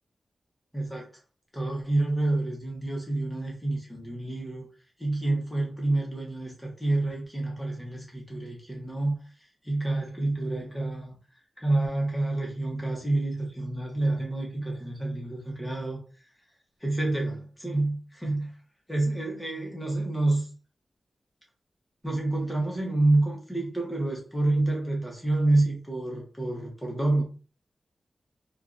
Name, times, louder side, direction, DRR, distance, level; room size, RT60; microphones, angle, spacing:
voice 1, 0.7-1.1 1.5-4.7 5.0-9.1 9.6-11.1 11.6-16.0 16.8-18.5 18.9-20.5 22.0-27.2, right 2 dB, 5° left, -2 dB, 0.9 m, -28 dB
3.4 x 2.3 x 2.5 m, 0.36 s
wide cardioid pair, 155°, 0 cm